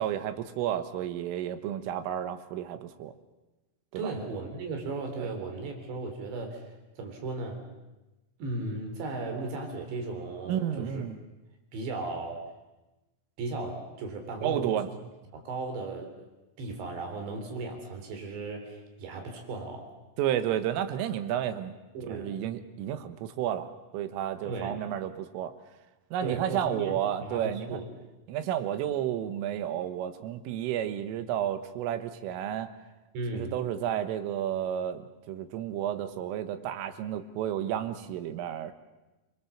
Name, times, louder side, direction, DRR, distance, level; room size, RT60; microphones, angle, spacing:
voice 1, 0.0-3.1 3.9-4.1 5.2-5.3 10.5-11.2 14.4-14.9 20.2-21.7 22.1-25.5 26.1-27.8 28.3-32.7 33.3-35.0 35.3-38.7, right 10 dB, 85° right, 10 dB, 3.9 m, -31 dB
voice 2, 4.0-7.6 8.4-11.0 11.7-12.4 13.4-14.8 15.3-16.3 16.6-19.9 22.0-22.3 24.4-24.8 26.2-27.9 33.1-33.6, right 3 dB, 65° right, 4 dB, 5.5 m, -36 dB
28.5 x 22.5 x 7.3 m, 1.1 s
omnidirectional pair, 5.6 m